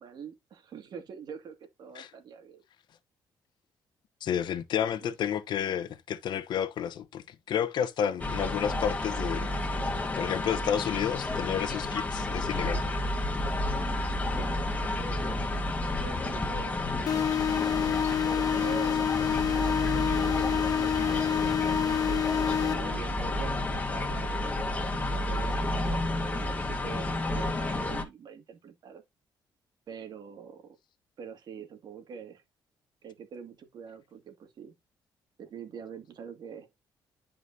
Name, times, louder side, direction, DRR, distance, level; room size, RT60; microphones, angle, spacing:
voice 1, 0.0-2.6 5.0-5.1 14.2-14.6 15.0-15.4 16.0-17.3 18.3-19.1 19.9-29.0 29.9-30.8 31.2-32.4 33.0-34.7 35.4-36.7, right 6 dB, 60° right, 2.3 m, -44 dB
voice 2, 4.2-9.5 10.2-12.9, left 9 dB, 70° left, 1.0 m, -31 dB
sound 1, 8.2-28.1, left 2 dB, 20° left, 1.7 m, -31 dB
sound 2, 17.1-23.1, left 9 dB, 50° left, 0.4 m, -28 dB
11.0 x 5.1 x 2.8 m
cardioid pair, 85°, 8 cm